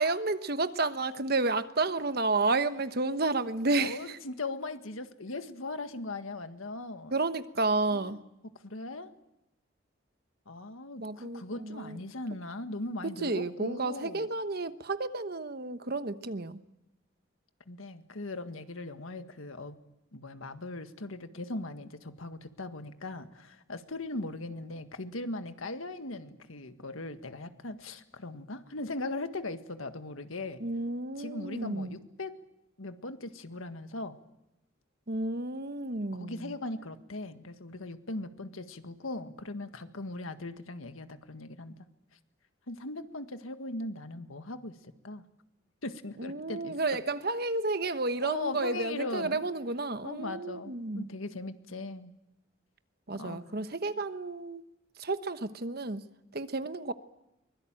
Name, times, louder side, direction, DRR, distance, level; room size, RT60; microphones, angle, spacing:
voice 1, 0.0-4.2 7.1-8.2 11.0-12.0 13.2-16.6 30.6-32.0 35.1-36.5 46.2-51.1 53.1-54.6 55.0-56.0 56.3-56.9, right 3 dB, 50° right, 11 dB, 1.1 m, -31 dB
voice 2, 3.8-7.1 7.9-8.2 8.6-9.1 10.5-14.3 17.7-19.8 20.1-30.6 31.2-32.4 32.8-34.2 36.1-41.8 42.7-45.2 45.8-46.8 48.2-49.4 50.0-52.1 53.1-53.4, left 2 dB, 90° left, 9 dB, 1.8 m, -39 dB
24.0 x 21.5 x 9.0 m, 0.90 s
head